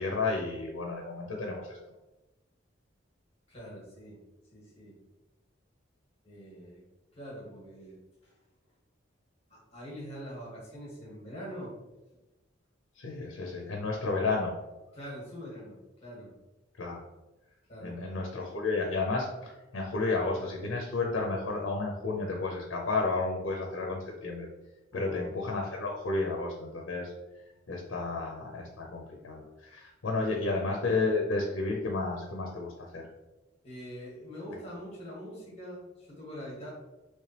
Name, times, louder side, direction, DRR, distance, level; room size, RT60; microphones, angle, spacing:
voice 1, 0.0-1.8 13.0-14.6 16.7-17.0 17.8-24.5 24.9-27.1 27.7-33.1, left 3 dB, 80° left, 0 dB, 0.6 m, -32 dB
voice 2, 3.5-4.2 4.5-5.0 6.2-6.8 7.1-8.4 9.5-11.8 14.9-16.4 17.7-18.0 24.9-25.2 30.3-30.4 33.6-36.7, equal, 35° left, -4 dB, 1.5 m, -44 dB
3.3 x 3.1 x 2.9 m, 1.0 s
head